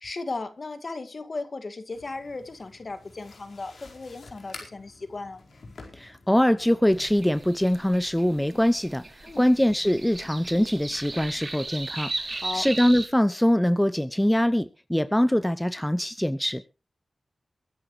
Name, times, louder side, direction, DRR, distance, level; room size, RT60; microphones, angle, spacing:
voice 1, 0.0-5.4 9.2-9.4 12.3-12.7, left 3 dB, 55° left, 10 dB, 2.0 m, -36 dB
sound 1, 1.9-7.1, left 3 dB, 80° left, 4.6 m, -49 dB
voice 2, 5.9-16.6, equal, 5° left, 14 dB, 0.7 m, -23 dB
sound 2, 6.9-13.1, right 3 dB, 45° right, 3.0 m, -37 dB
22.5 x 10.0 x 3.2 m, 0.31 s
cardioid pair, 65°, 0 cm